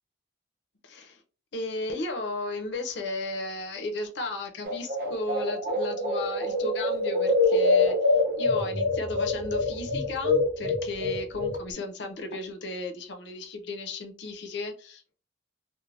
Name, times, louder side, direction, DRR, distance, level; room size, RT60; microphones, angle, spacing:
voice 1, 0.8-1.2 1.5-15.2, left 2 dB, 60° left, 0.5 m, -35 dB
sound 1, 4.6-11.6, left 2 dB, 50° right, 0.9 m, -25 dB
3.2 x 2.1 x 2.4 m
head